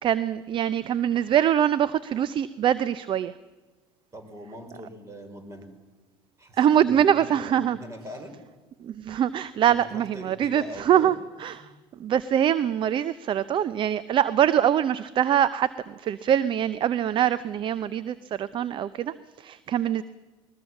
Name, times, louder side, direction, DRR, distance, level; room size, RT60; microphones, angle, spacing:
voice 1, 0.0-3.3 6.6-7.8 8.8-11.7 12.0-20.0, right 10 dB, 45° right, 17 dB, 0.7 m, -24 dB
voice 2, 4.1-5.7 6.4-8.3 9.7-11.1 11.6-11.7, equal, 25° right, 7 dB, 4.7 m, -42 dB
20.5 x 20.0 x 7.3 m, 1.3 s
hypercardioid pair, 70°, 12 cm